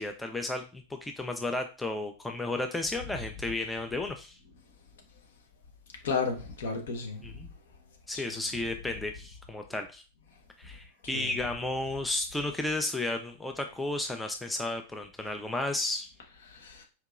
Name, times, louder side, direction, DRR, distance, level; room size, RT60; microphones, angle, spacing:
voice 1, 0.0-4.4 7.2-7.5 8.1-10.0 10.6-16.1, left 2 dB, 5° left, 0.5 m, -33 dB
voice 2, 6.0-7.3 8.1-8.3 11.0-11.3 16.4-16.8, left 5 dB, 60° left, 1.0 m, -33 dB
4.5 x 2.7 x 2.4 m
figure-of-eight pair, 90°, 0 cm